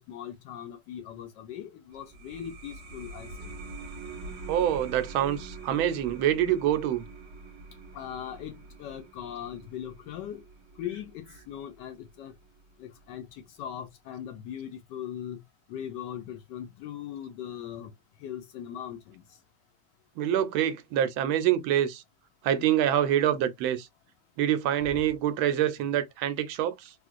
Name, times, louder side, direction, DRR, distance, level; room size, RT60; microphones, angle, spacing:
voice 1, 0.0-3.5 6.4-6.6 7.9-10.4 10.8-12.3 12.8-15.4 15.7-17.9 18.2-19.2 22.5-22.7, left 10 dB, 75° left, 1.0 m, -40 dB
sound 1, 1.9-13.1, right 3 dB, 55° right, 0.9 m, -45 dB
voice 2, 4.5-7.0 20.2-22.0 22.4-23.9 24.4-26.9, right 11 dB, 85° right, 1.4 m, -26 dB
3.7 x 2.4 x 2.4 m
omnidirectional pair, 2.2 m